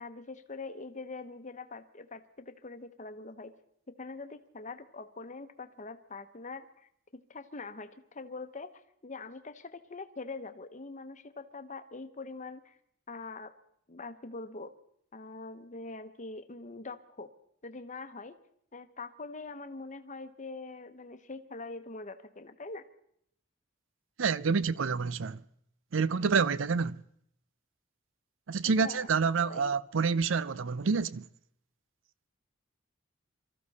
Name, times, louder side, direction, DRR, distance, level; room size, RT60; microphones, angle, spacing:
voice 1, 0.0-3.6 4.0-8.7 9.0-12.8 13.1-13.5 13.9-14.7 15.1-17.3 17.6-18.4 18.7-22.8 28.6-29.1 29.4-29.8, left 3 dB, 40° left, 1.0 m, -43 dB
voice 2, 24.2-25.4 25.9-27.0 28.5-31.3, right 5 dB, 70° right, 0.5 m, -28 dB
24.5 x 14.0 x 4.2 m
head